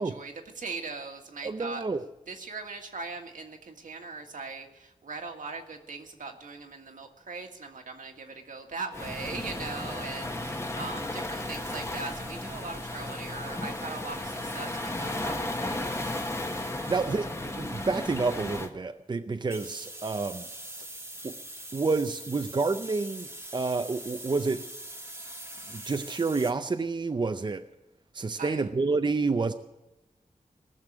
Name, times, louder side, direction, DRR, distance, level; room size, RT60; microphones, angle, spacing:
voice 1, 0.0-1.8 2.3-16.2 28.4-28.7, right 4 dB, 75° right, 3 dB, 1.7 m, -40 dB
voice 2, 1.4-2.0 16.9-20.5 21.2-21.4 21.7-24.6 25.7-27.7 28.1-29.5, right 3 dB, 35° right, 7 dB, 0.6 m, -29 dB
Waves surf, 8.9-18.7, left 1 dB, 20° left, 1.3 m, -34 dB
sound 1, 11.4-17.0 19.5-26.5, right 1 dB, 20° right, 1.5 m, -45 dB
19.0 x 6.7 x 8.7 m, 0.97 s
wide cardioid pair, 110°, 13 cm